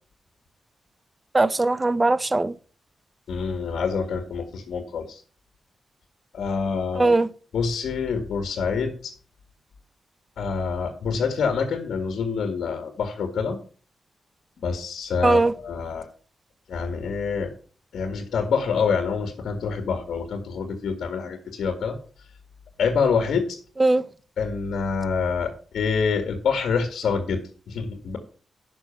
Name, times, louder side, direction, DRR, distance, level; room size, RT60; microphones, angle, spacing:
voice 1, 1.3-2.6 6.9-7.3 15.2-15.5 23.8-24.0, right 2 dB, 25° right, 0.6 m, -20 dB
voice 2, 3.3-5.2 6.3-7.1 7.5-9.1 10.4-13.6 14.6-16.1 16.7-17.5 17.9-22.0 22.8-23.6 24.4-28.2, left 5 dB, 80° left, 1.9 m, -26 dB
10.5 x 6.2 x 5.8 m
cardioid pair, 90°, 0 cm